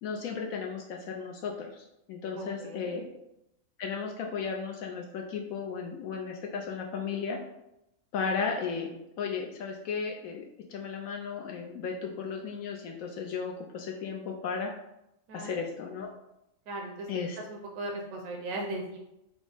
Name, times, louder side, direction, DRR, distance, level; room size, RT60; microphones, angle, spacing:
voice 1, 0.0-3.1 3.8-7.4 8.1-10.4 10.7-14.7 15.3-16.1 17.1-17.4, left 5 dB, 80° left, 1 dB, 1.0 m, -35 dB
voice 2, 2.3-3.0 15.3-15.6 16.7-17.1 17.5-19.0, right 2 dB, 85° right, 0 dB, 1.1 m, -38 dB
5.0 x 2.1 x 4.8 m, 0.86 s
omnidirectional pair, 1.4 m